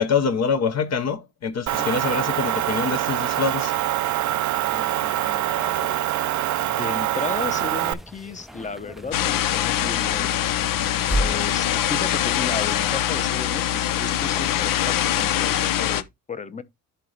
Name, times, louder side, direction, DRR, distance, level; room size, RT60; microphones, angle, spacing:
voice 1, 0.0-3.7, left 5 dB, 50° left, 0.9 m, -25 dB
Motor vehicle (road) / Engine, 1.7-7.9, right 13 dB, 55° right, 0.6 m, -24 dB
voice 2, 4.6-6.1 6.7-10.4 11.2-16.6, left 4 dB, 20° left, 0.8 m, -34 dB
sound 1, 7.2-15.4, right 1 dB, ahead, 0.4 m, -35 dB
sound 2, 9.1-16.0, left 11 dB, 70° left, 0.7 m, -23 dB
11.0 x 3.9 x 3.3 m
cardioid pair, 115°, 34 cm